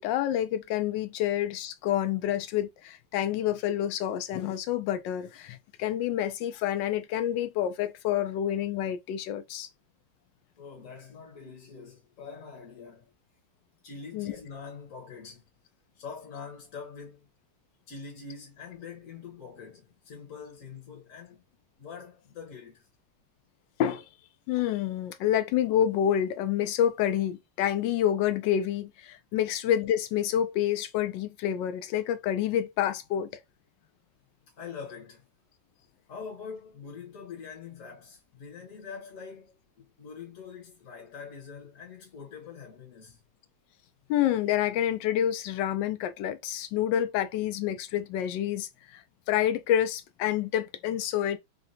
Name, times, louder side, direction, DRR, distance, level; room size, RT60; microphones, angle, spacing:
voice 1, 0.0-9.7 14.1-14.4 23.8-24.0 24.5-33.4 44.1-51.4, left 10 dB, 90° left, 1.2 m, -28 dB
voice 2, 10.6-13.1 13.8-15.5 15.9-17.3 17.9-21.5 21.8-22.9 34.5-35.3 36.1-43.2, left 5 dB, 55° left, 1.1 m, -44 dB
3.9 x 2.2 x 2.6 m
omnidirectional pair, 1.9 m